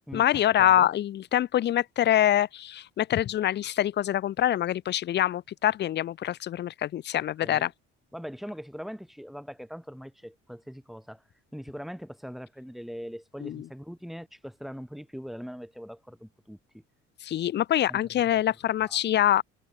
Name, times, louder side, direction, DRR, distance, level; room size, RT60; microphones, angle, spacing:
voice 1, 0.1-7.7 13.4-13.7 17.2-19.4, left 12 dB, 35° left, 0.4 m, -25 dB
voice 2, 7.1-7.7 8.1-11.2 11.5-16.8 17.9-18.0 18.8-19.0, equal, ahead, 3.9 m, -41 dB
supercardioid pair, 75°, 30 cm